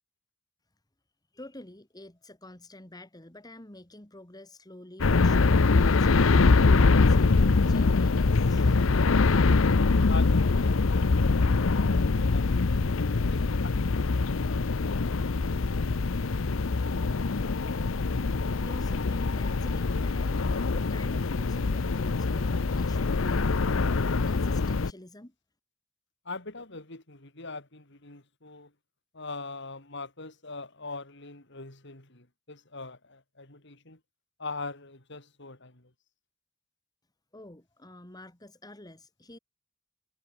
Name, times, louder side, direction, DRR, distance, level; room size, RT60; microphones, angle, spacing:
voice 1, 1.3-8.9 18.6-23.9 24.2-25.3 37.3-39.4, left 1 dB, 20° left, 2.5 m, -48 dB
sound 1, 5.0-24.9, left 3 dB, 85° left, 0.7 m, -24 dB
voice 2, 9.6-11.9 12.2-12.9 13.3-15.8 26.2-28.7 29.1-34.0 34.4-35.9, left 3 dB, 65° left, 4.7 m, -42 dB
head